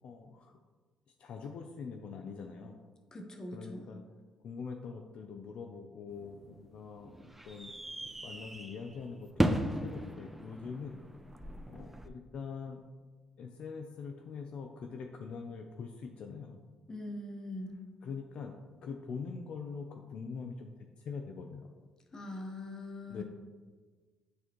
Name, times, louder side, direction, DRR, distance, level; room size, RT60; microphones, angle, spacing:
voice 1, 0.0-0.6 1.2-2.8 3.5-4.0 4.4-7.7 8.2-11.0 11.7-12.8 13.4-16.6 18.0-21.7 23.1-23.2, left 5 dB, 65° left, 4 dB, 0.5 m, -43 dB
voice 2, 3.1-3.9 16.9-17.8 22.1-23.2, left 1 dB, 30° left, 3 dB, 1.2 m, -42 dB
sound 1, 6.1-12.1, right 1 dB, 10° right, 0.5 m, -37 dB
9.5 x 4.1 x 3.0 m, 1.4 s
cardioid pair, 85°, 2 cm